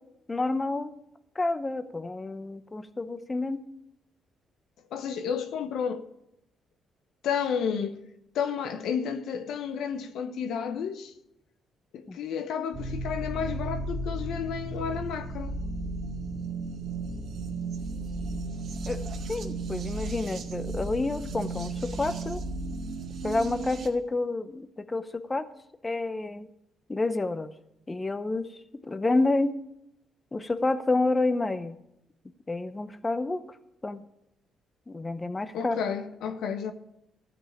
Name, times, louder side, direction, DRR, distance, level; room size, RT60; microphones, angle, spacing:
voice 1, 0.3-0.9 1.4-3.6 12.1-12.2 18.9-19.0 19.3-22.4 23.2-25.5 25.8-26.5 26.9-27.5 27.9-28.5 28.8-29.6 30.3-31.8 32.5-33.4 33.8-34.0 34.9-35.8, left 2 dB, 20° left, 0.7 m, -29 dB
voice 2, 4.9-6.0 7.2-8.0 8.3-11.1 11.9-15.6 35.5-36.7, left 7 dB, 80° left, 1.0 m, -31 dB
sound 1, 12.7-23.9, right 2 dB, 60° right, 1.9 m, -34 dB
13.5 x 5.4 x 8.7 m
cardioid pair, 90°, 0 cm